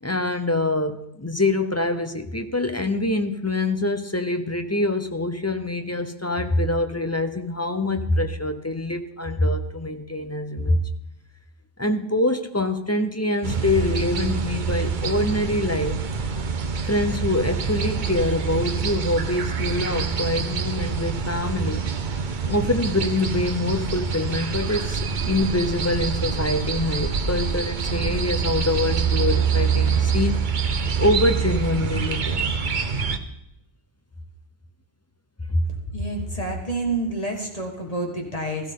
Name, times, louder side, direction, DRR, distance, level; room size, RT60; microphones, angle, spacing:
voice 1, 0.0-10.8 11.8-16.0 16.8-21.8 22.4-32.4 35.5-35.7, left 2 dB, 15° left, 7 dB, 0.7 m, -25 dB
sound 1, 13.4-33.2, right 6 dB, 50° right, 1.0 m, -26 dB
voice 2, 35.9-38.7, right 2 dB, 35° left, 1 dB, 1.9 m, -28 dB
16.5 x 13.5 x 3.8 m, 0.83 s
omnidirectional pair, 1.1 m